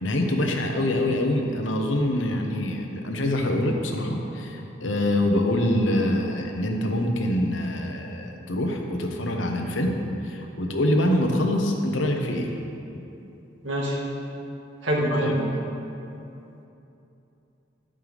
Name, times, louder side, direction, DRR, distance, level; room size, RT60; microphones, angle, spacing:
voice 1, 0.0-9.9 10.2-12.5 15.0-15.3, left 1 dB, 85° left, 2 dB, 1.1 m, -25 dB
voice 2, 13.6-14.0 14.8-15.5, equal, 90° right, -2 dB, 1.8 m, -24 dB
12.5 x 8.7 x 3.6 m, 2.9 s
head